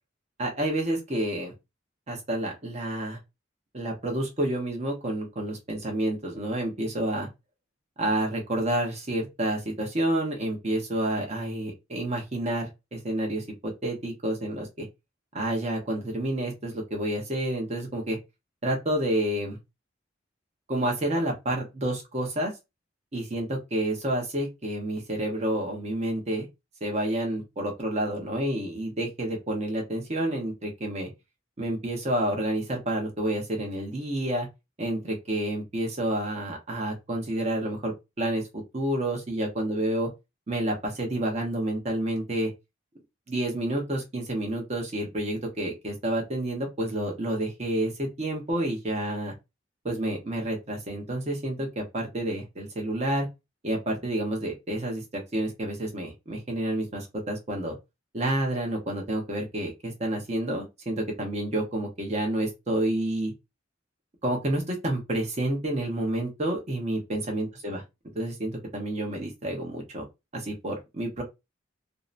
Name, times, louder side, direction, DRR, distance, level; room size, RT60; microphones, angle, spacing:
voice 1, 0.4-1.5 2.1-3.2 3.7-7.3 8.0-14.9 15.3-18.2 18.6-19.6 20.7-22.5 23.1-26.5 26.8-31.1 31.6-34.5 34.8-38.4 38.7-40.1 40.5-42.5 43.3-49.3 49.8-53.3 53.6-57.7 58.1-63.3 64.2-67.8 68.1-70.0 70.3-71.2, right 1 dB, 35° right, 0.7 m, -29 dB
2.6 x 2.1 x 2.4 m
head